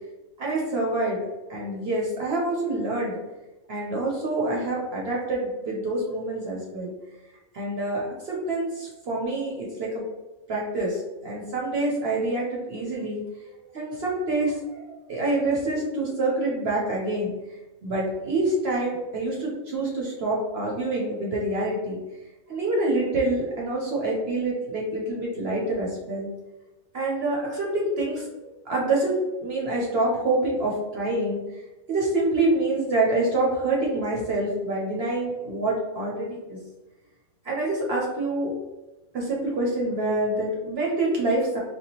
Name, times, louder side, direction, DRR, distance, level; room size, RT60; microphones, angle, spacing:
voice 1, 0.4-1.2 1.5-3.2 3.7-6.9 7.5-10.0 10.5-13.3 13.7-17.3 17.8-22.0 22.5-26.3 26.9-31.4 31.9-36.6 37.4-38.5 39.1-41.6, right 2 dB, 55° right, -3 dB, 0.7 m, -26 dB
3.4 x 2.2 x 2.8 m, 1.1 s
omnidirectional pair, 1.5 m